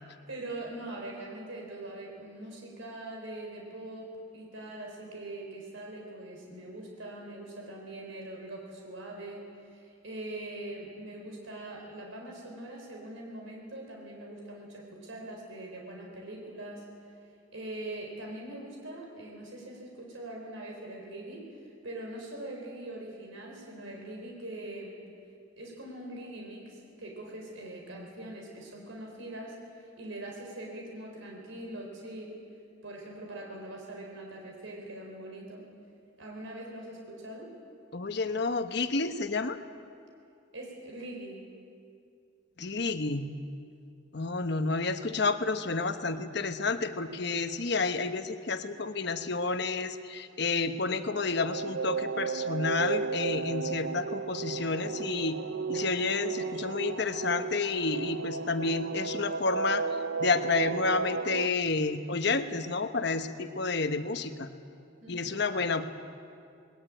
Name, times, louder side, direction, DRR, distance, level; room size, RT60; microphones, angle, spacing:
voice 1, 0.3-16.9 17.5-24.9 25.6-29.6 30.0-32.4 32.8-35.7 36.2-37.5 40.5-41.4 65.0-65.4, right 1 dB, 90° right, 0 dB, 4.4 m, -42 dB
voice 2, 37.9-39.6 42.6-43.3 44.1-55.4 55.7-59.9 60.2-64.5 65.1-65.8, left 4 dB, 55° left, 9 dB, 1.1 m, -30 dB
sound 1, 50.8-61.5, right 5 dB, 65° right, 0.5 m, -34 dB
20.5 x 19.5 x 8.9 m, 2.4 s
head